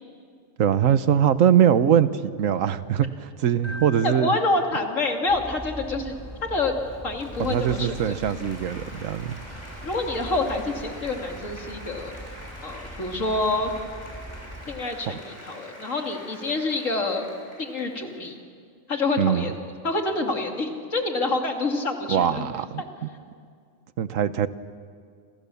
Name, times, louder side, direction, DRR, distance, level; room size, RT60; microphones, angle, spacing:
voice 1, 0.6-4.3 7.4-9.4 15.1-15.2 19.2-19.5 22.1-22.8 24.0-24.5, right 9 dB, 75° right, 13 dB, 1.3 m, -22 dB
Keyboard (musical), 3.6-5.5, left 2 dB, 55° right, 3.0 m, -42 dB
voice 2, 4.0-6.2 6.5-6.7 7.0-8.2 9.8-12.1 12.6-13.7 14.7-17.2 17.6-18.4 18.9-19.5 19.8-22.5 22.8-22.9, left 2 dB, 70° left, 3 dB, 3.0 m, -27 dB
Bird vocalization bird call bird song, 5.3-14.8, equal, ahead, 3.7 m, -41 dB
Applause, 6.7-18.3, equal, 20° left, 6.5 m, -45 dB
28.5 x 28.0 x 7.1 m, 2.2 s
omnidirectional pair, 1.4 m